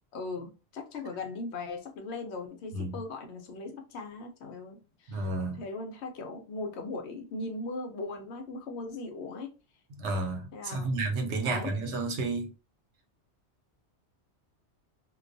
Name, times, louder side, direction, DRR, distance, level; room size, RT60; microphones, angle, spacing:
voice 1, 0.1-9.5 10.5-10.9 11.4-11.7, left 3 dB, 75° left, 0.9 m, -39 dB
voice 2, 5.1-5.6 10.0-12.5, right 2 dB, 75° right, 0.9 m, -31 dB
2.3 x 2.3 x 2.5 m
omnidirectional pair, 1.2 m